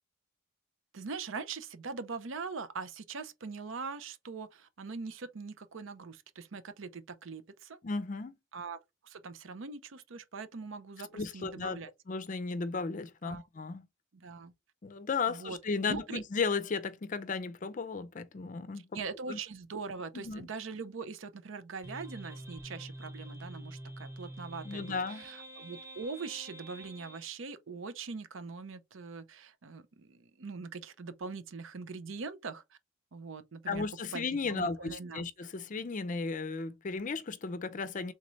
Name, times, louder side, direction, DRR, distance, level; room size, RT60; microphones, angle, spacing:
voice 1, 0.9-7.8 8.5-8.8 9.0-11.9 13.2-13.5 14.1-14.5 15.3-15.6 15.9-16.2 18.9-32.6 33.1-35.2, right 4 dB, 80° right, 0.6 m, -42 dB
voice 2, 7.8-8.3 11.1-11.8 12.1-13.9 14.8-18.9 19.3-19.4 20.1-20.5 24.6-25.2 33.7-38.1, left 4 dB, 40° left, 0.5 m, -35 dB
sound 1, 21.8-27.2, right 1 dB, 15° right, 1.0 m, -46 dB
3.6 x 3.1 x 3.9 m
head